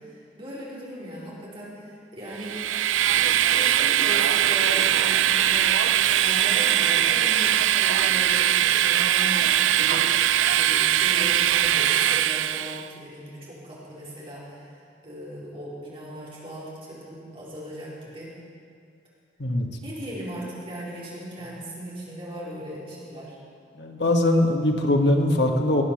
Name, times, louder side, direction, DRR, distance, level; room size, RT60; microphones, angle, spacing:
voice 1, 0.0-2.6 3.1-5.9 6.2-8.5 8.8-10.1 10.5-14.7 15.0-18.3 19.8-23.4, equal, 30° right, -7 dB, 4.4 m, -38 dB
Train, 2.4-12.8, right 11 dB, 90° right, 0.4 m, -21 dB
voice 2, 23.7-25.8, left 1 dB, 65° left, 2 dB, 1.6 m, -21 dB
18.5 x 8.5 x 7.2 m, 2.3 s
head